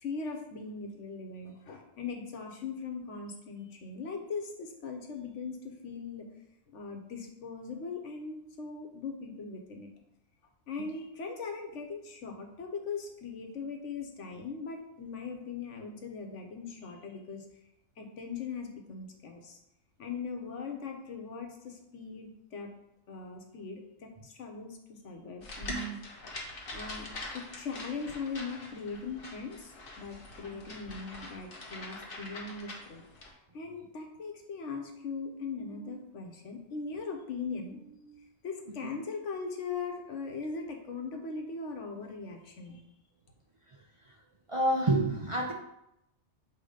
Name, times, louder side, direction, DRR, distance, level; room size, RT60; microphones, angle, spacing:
voice 1, 0.0-6.3 6.7-9.9 10.7-17.5 18.0-19.6 20.0-22.7 23.1-26.0 26.7-27.1 27.3-33.0 33.5-42.8, left 4 dB, 80° left, 3 dB, 1.3 m, -40 dB
sound 1, 25.4-33.3, left 1 dB, 50° left, 1.3 m, -43 dB
voice 2, 44.5-45.5, right 1 dB, 40° right, -1 dB, 0.5 m, -27 dB
7.2 x 3.1 x 5.0 m, 0.84 s
omnidirectional pair, 1.2 m